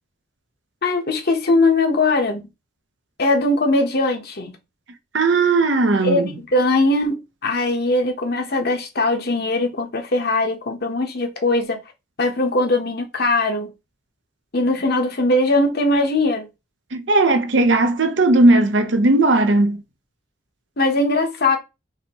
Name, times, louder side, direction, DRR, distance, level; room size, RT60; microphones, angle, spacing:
voice 1, 0.8-2.4 3.2-4.5 6.0-11.8 12.2-13.7 14.5-16.5 20.8-21.6, left 2 dB, 55° left, 1.1 m, -20 dB
voice 2, 5.1-6.3 16.9-19.8, right 2 dB, 65° right, 0.8 m, -17 dB
5.8 x 2.8 x 2.9 m
head